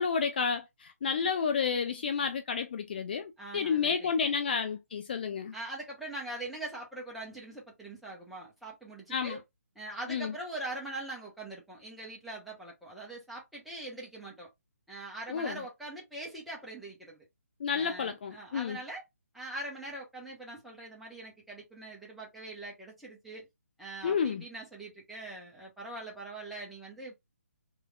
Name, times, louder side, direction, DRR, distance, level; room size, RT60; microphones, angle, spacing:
voice 1, 0.0-5.5 9.1-9.4 10.1-10.3 15.3-15.6 17.6-18.8 24.0-24.4, left 6 dB, 40° left, 0.4 m, -31 dB
voice 2, 3.4-4.3 5.5-9.4 9.7-14.5 14.9-17.2 17.7-19.0 19.3-23.5 23.8-27.1, right 2 dB, ahead, 1.0 m, -42 dB
3.3 x 3.1 x 2.2 m
figure-of-eight pair, 140°, 8 cm